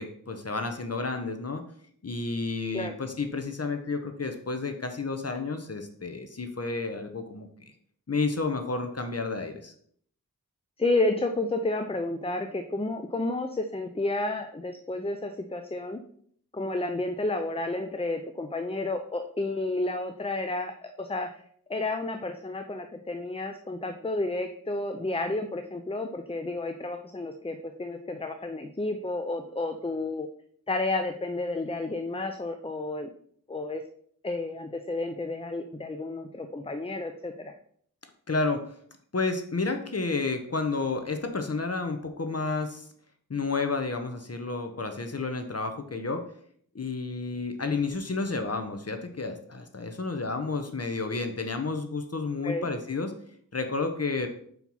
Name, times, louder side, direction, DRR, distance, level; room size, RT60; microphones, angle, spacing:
voice 1, 0.0-1.6 2.0-7.5 8.1-9.7 38.3-38.6 39.1-42.9 43.3-46.2 46.7-53.1 53.5-54.3, left 3 dB, 45° left, 6 dB, 0.9 m, -31 dB
voice 2, 10.8-16.0 16.5-21.4 21.7-30.3 30.7-33.1 33.5-33.8 34.2-37.5 52.4-52.7, left 2 dB, 15° left, 7 dB, 0.5 m, -31 dB
5.4 x 4.6 x 5.5 m, 0.62 s
wide cardioid pair, 55°, 34 cm